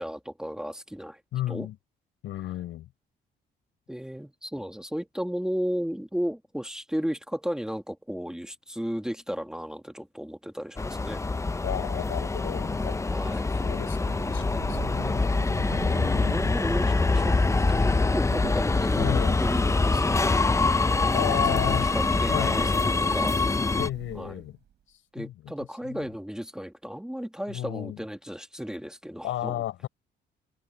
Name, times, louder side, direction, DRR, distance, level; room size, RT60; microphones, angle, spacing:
voice 1, 0.0-1.2 1.5-1.7 3.9-11.2 13.1-13.5 15.8-20.3 20.8-23.3 24.1-24.4 25.1-29.6, equal, 5° right, 1.8 m, -34 dB
voice 2, 1.3-1.8 2.2-2.9 11.6-13.3 13.6-15.2 15.7-16.6 19.0-19.4 21.1-21.9 22.3-22.6 23.7-24.6 25.2-25.5 25.8-26.1 27.5-28.0 29.2-29.9, left 13 dB, 85° left, 6.3 m, -33 dB
Subway metro underground, 10.8-23.9, left 3 dB, 15° left, 0.6 m, -25 dB
Thunder, 13.8-24.7, right 9 dB, 65° right, 4.7 m, -42 dB
cardioid pair, 90°, 20 cm